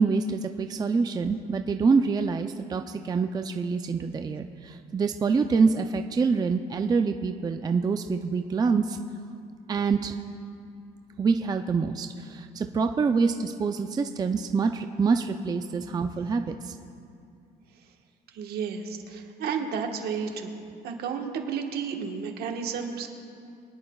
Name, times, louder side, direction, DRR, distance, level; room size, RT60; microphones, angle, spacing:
voice 1, 0.0-9.0 9.7-10.2 11.2-16.7, right 5 dB, 25° right, 6 dB, 0.4 m, -26 dB
voice 2, 18.3-23.1, right 6 dB, 70° right, 3 dB, 1.4 m, -32 dB
23.0 x 11.0 x 2.3 m, 2.5 s
cardioid pair, 110°, 17 cm